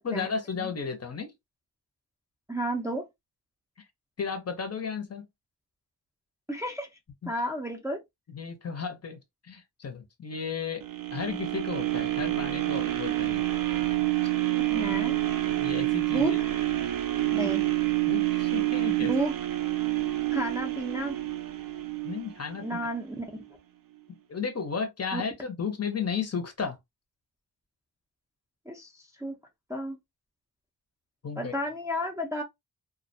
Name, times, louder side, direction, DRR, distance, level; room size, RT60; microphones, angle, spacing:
voice 1, 0.0-1.3 3.8-3.9 4.2-5.3 7.2-7.3 8.3-10.8 11.1-13.4 14.2-14.3 15.5-16.4 17.4-17.5 18.1-19.1 22.0-22.7 24.1-26.8 31.2-31.5, left 6 dB, 40° left, 0.6 m, -34 dB
voice 2, 2.5-3.0 6.5-6.9 7.3-8.0 14.6-15.2 16.1-16.3 17.3-17.6 19.1-19.3 20.3-21.2 22.6-23.2 25.1-25.2 28.7-29.3 29.7-30.0 31.4-32.4, equal, 10° right, 0.4 m, -32 dB
sound 1, 10.8-22.9 23.4-23.5, right 16 dB, 60° right, 0.5 m, -28 dB
2.3 x 2.1 x 2.5 m
wide cardioid pair, 115°, 38 cm